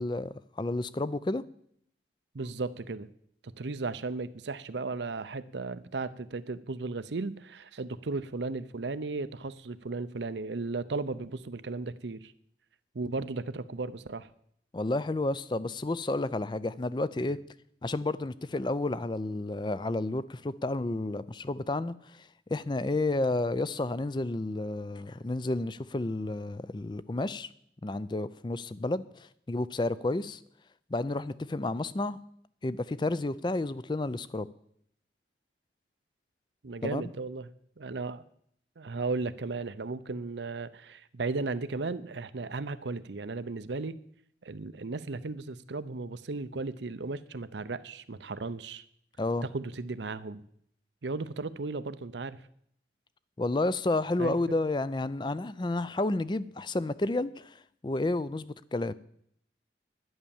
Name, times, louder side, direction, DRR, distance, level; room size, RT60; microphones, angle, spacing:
voice 1, 0.0-1.4 14.7-17.4 17.8-21.9 22.5-27.5 27.8-29.1 29.5-30.4 30.9-32.2 32.6-34.5 36.8-37.0 49.2-49.5 53.4-57.5 57.8-58.9, left 2 dB, 25° left, 0.4 m, -31 dB
voice 2, 2.3-3.1 3.6-12.3 12.9-14.3 36.6-37.5 37.8-38.2 38.8-44.0 44.4-48.8 49.4-50.4 51.0-52.4 54.2-54.3, right 3 dB, 85° right, 0.7 m, -35 dB
11.0 x 10.0 x 7.1 m
head